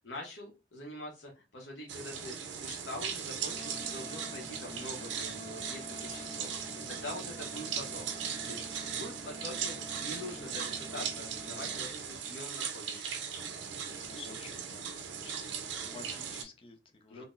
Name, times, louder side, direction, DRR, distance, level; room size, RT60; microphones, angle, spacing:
voice 1, 0.0-6.5 6.9-8.1 8.5-13.1 17.1-17.3, left 1 dB, 80° left, -1 dB, 0.8 m, -44 dB
sound 1, 1.9-16.4, right 7 dB, 85° right, 0.5 m, -38 dB
Wind instrument woodwind instrument, 3.4-11.8, left 2 dB, 15° right, 1.1 m, -50 dB
voice 2, 13.9-15.5 15.8-17.2, left 4 dB, 30° left, 7 dB, 0.4 m, -51 dB
3.7 x 2.0 x 2.5 m, 0.29 s
head